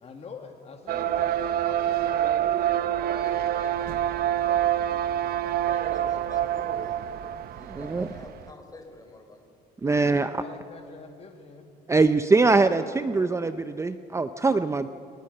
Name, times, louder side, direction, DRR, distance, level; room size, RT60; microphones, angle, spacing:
voice 1, 0.0-2.2 9.8-11.8, left 4 dB, 40° left, 4 dB, 2.0 m, -45 dB
sound 1, 0.9-8.4, right 11 dB, 65° right, 0.8 m, -26 dB
voice 2, 3.1-7.0 7.6-9.4, left 2 dB, 20° left, 4 dB, 4.8 m, -47 dB
voice 3, 7.6-8.1 9.8-10.4 11.9-14.9, right 3 dB, 15° right, 10 dB, 0.7 m, -23 dB
29.0 x 20.0 x 6.7 m, 2.6 s
cardioid pair, 110°, 17 cm